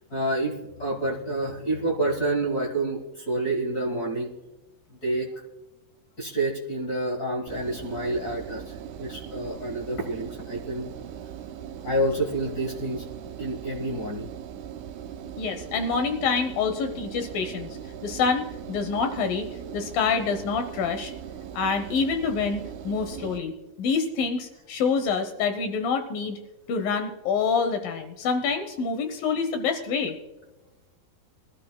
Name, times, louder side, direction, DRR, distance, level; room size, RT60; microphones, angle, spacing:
voice 1, 0.1-4.3 5.0-5.3 6.2-10.9 11.8-13.0 13.4-14.3, right 2 dB, 50° left, 0 dB, 1.1 m, -28 dB
Engine, 7.5-23.4, right 9 dB, 80° right, 1.8 m, -39 dB
voice 2, 15.4-17.7 18.0-21.1 21.5-26.4 26.7-30.2, left 5 dB, 75° left, 7 dB, 2.6 m, -27 dB
23.0 x 12.5 x 2.2 m, 1.1 s
omnidirectional pair, 4.2 m